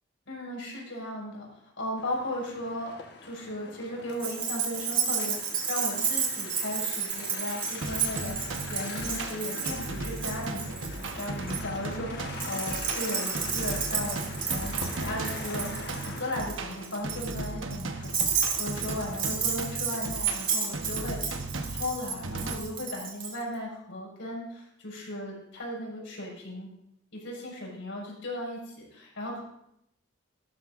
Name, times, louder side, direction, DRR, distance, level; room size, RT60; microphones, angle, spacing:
voice 1, 0.3-3.0 3.2-8.3 8.7-14.7 15.0-15.8 16.0-21.4 21.7-26.7 27.1-29.4, left 1 dB, 75° left, -3 dB, 6.1 m, -36 dB
sound 1, 2.0-16.9, left 3 dB, 55° left, 1.4 m, -43 dB
Keys jangling, 4.2-11.6 12.3-23.3, right 6 dB, 25° right, 3.1 m, -32 dB
sound 2, 7.8-22.6, right 2 dB, 80° right, 1.2 m, -37 dB
17.5 x 13.0 x 2.6 m, 0.78 s
head